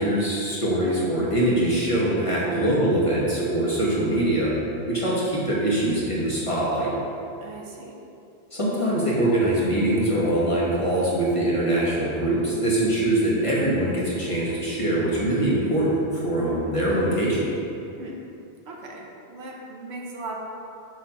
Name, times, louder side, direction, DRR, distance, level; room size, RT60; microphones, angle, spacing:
voice 1, 0.0-4.5 4.9-6.9 8.5-17.5, right 1 dB, 30° left, -7 dB, 1.4 m, -23 dB
voice 2, 7.4-8.0 18.0-18.2 18.7-20.4, right 2 dB, 80° right, -1 dB, 1.1 m, -38 dB
6.3 x 6.2 x 2.9 m, 2.7 s
omnidirectional pair, 1.1 m